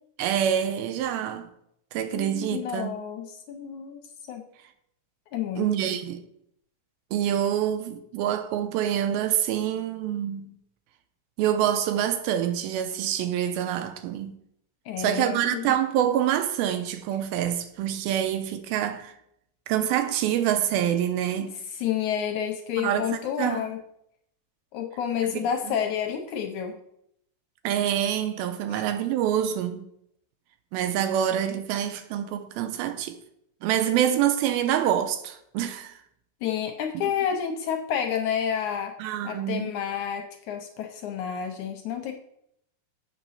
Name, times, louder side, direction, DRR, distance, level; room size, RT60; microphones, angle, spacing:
voice 1, 0.2-1.5 1.9-2.9 5.6-6.2 7.1-10.5 11.4-14.3 15.0-19.1 19.7-21.5 22.8-23.7 25.2-25.3 25.7-25.8 27.6-29.8 30.7-33.2 33.6-36.0 36.9-37.1 39.0-39.7, right 10 dB, 85° right, 2.5 m, -26 dB
voice 2, 2.1-4.0 4.3-4.4 5.3-6.0 14.9-15.7 21.7-23.8 24.7-26.8 28.7-28.8 36.4-38.9 39.2-42.1, left 8 dB, 75° left, 1.8 m, -30 dB
8.0 x 5.3 x 5.7 m
omnidirectional pair, 4.3 m